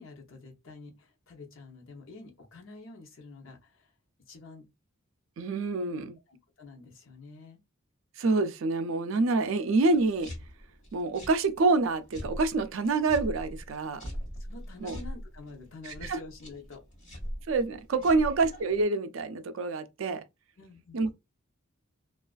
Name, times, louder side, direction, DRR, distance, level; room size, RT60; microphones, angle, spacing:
voice 1, 0.0-3.9 4.3-4.6 6.3-7.6 13.8-14.1 14.4-16.8 18.0-18.2 20.6-21.0, left 3 dB, 65° left, 0.7 m, -48 dB
voice 2, 5.4-6.2 8.2-10.3 10.9-14.0 14.8-15.0 15.8-16.2 17.5-20.2 20.9-21.1, right 3 dB, 65° right, 0.4 m, -27 dB
sound 1, 9.9-18.8, equal, 35° left, 1.2 m, -42 dB
2.4 x 2.4 x 2.3 m
head